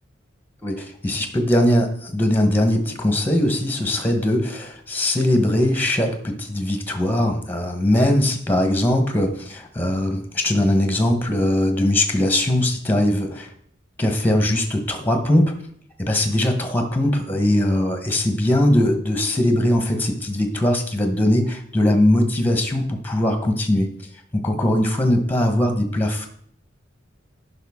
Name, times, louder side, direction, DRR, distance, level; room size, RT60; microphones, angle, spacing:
voice 1, 0.6-13.5 14.0-15.5 16.0-23.9 24.3-26.3, left 1 dB, 10° left, 6 dB, 1.0 m, -20 dB
10.0 x 5.6 x 3.6 m, 0.63 s
head